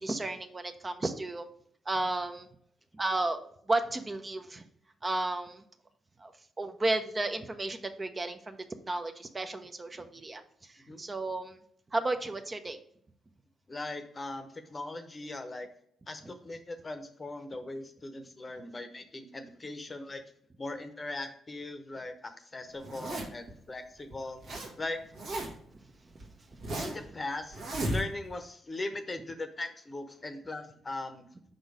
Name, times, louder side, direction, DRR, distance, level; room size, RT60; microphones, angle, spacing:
voice 1, 0.0-1.4 1.9-2.5 2.9-3.4 3.7-4.6 5.0-5.6 6.2-6.3 6.6-8.6 8.9-11.6 11.9-12.8 26.5-26.6, right 2 dB, 30° right, 7 dB, 0.7 m, -33 dB
voice 2, 13.7-15.7 16.1-20.2 20.6-24.4 24.8-25.0 26.8-27.6 27.9-31.2, left 2 dB, 30° left, 8 dB, 0.8 m, -39 dB
Zipper (clothing), 22.8-23.5 24.1-24.7 25.0-25.7 26.2-27.1 27.5-28.4, right 1 dB, 65° right, 1.5 m, -35 dB
5.2 x 3.8 x 4.7 m, 0.65 s
hypercardioid pair, 40°, 0 cm